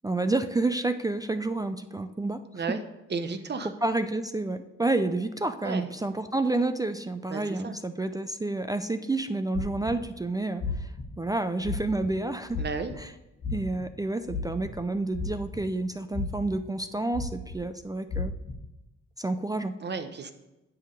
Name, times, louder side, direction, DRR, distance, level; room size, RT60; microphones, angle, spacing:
voice 1, 0.0-2.4 3.8-12.6 13.0-13.1 13.5-18.3 19.2-19.8, right 2 dB, 10° right, 9 dB, 0.4 m, -29 dB
voice 2, 3.1-3.7 5.6-5.9 7.3-7.8 12.6-12.9 19.8-20.3, right 4 dB, 35° right, 8 dB, 0.9 m, -33 dB
sound 1, 9.5-10.0 10.6-11.0 11.6-12.1 12.5-12.9 13.4-13.8 14.3-14.7 15.1-15.8 16.1-16.6 17.1-17.5 18.1-18.5, left 4 dB, 60° left, 1.5 m, -32 dB
9.8 x 3.7 x 6.5 m, 0.97 s
cardioid pair, 90°, 30 cm